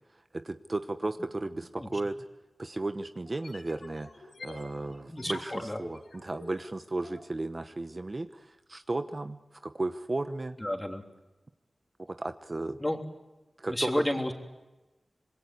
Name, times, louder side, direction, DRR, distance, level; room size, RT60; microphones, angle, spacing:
voice 1, 0.1-2.1 2.6-10.6 12.1-12.8 13.6-14.0, right 2 dB, 35° right, 9 dB, 1.0 m, -35 dB
sound 1, 3.2-7.2, left 2 dB, 85° left, 6.6 m, -47 dB
voice 2, 5.1-5.8 10.6-11.0 12.8-13.0 13.7-14.3, left 1 dB, 15° left, 4 dB, 3.4 m, -31 dB
26.0 x 21.5 x 9.6 m, 1.1 s
wide cardioid pair, 80°, 0 cm